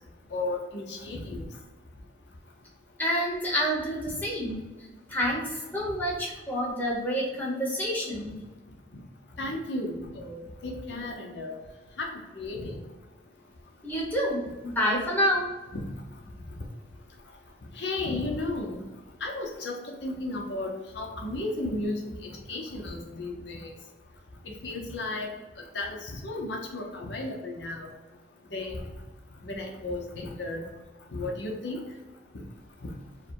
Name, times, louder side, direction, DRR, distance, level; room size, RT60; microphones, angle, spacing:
voice 1, 0.3-1.4 9.4-11.5 12.0-12.1 12.3-12.8 15.7-15.8 17.8-18.8 19.2-19.8 20.0-23.7 24.5-25.3 25.7-27.9 28.5-28.8 29.4-30.6 31.1-31.8, left 2 dB, 70° left, 1 dB, 0.8 m, -34 dB
voice 2, 3.0-4.5 5.1-8.3 13.8-15.5, equal, 10° left, -4 dB, 1.0 m, -28 dB
4.7 x 2.2 x 4.6 m, 1.2 s
head